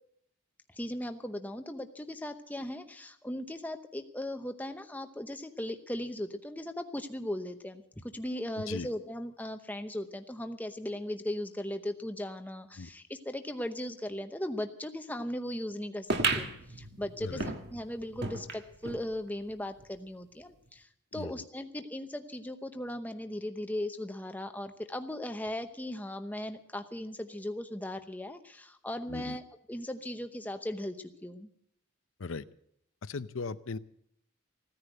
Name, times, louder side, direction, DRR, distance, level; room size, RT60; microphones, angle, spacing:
voice 1, 0.7-16.1 16.3-29.4 29.7-31.5, left 1 dB, 10° left, 7 dB, 0.8 m, -38 dB
sound 1, 16.1-19.1 19.5-19.6 19.8-19.9 20.7-20.8, right 3 dB, 50° right, 1.6 m, -34 dB
voice 2, 17.2-17.5 21.1-21.4 29.1-29.4 32.2-32.4 33.0-33.8, left 4 dB, 65° left, 15 dB, 0.6 m, -38 dB
16.0 x 10.0 x 7.8 m, 0.73 s
head